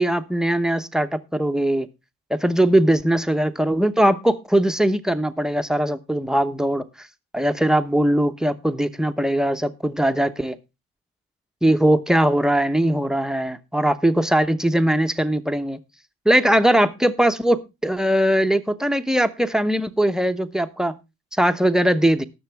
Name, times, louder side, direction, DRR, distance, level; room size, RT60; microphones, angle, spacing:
voice 1, 0.0-1.9 2.3-6.8 7.3-10.6 11.6-15.8 16.2-20.9 21.4-22.2, right 1 dB, ahead, 10 dB, 0.9 m, -20 dB
18.5 x 6.7 x 3.4 m, 0.25 s
cardioid pair, 90°, 30 cm